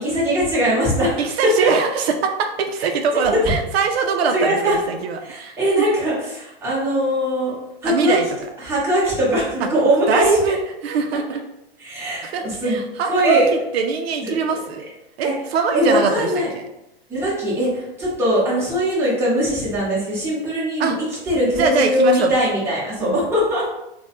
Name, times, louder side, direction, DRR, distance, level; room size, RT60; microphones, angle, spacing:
voice 1, 0.0-1.2 4.3-4.7 5.2-7.5 7.8-8.2 8.6-10.2 11.8-13.5 14.2-14.6 15.2-15.3 15.7-16.5 17.1-20.9 21.3-23.6, equal, 10° right, -8 dB, 0.9 m, -21 dB
voice 2, 1.2-5.6 7.8-8.3 10.1-10.6 10.8-11.4 12.2-14.8 15.2-16.7 20.8-21.0 21.5-22.3 23.0-23.3, right 5 dB, 75° right, 4 dB, 0.5 m, -22 dB
3.0 x 2.2 x 2.9 m, 0.89 s
hypercardioid pair, 145°, 31 cm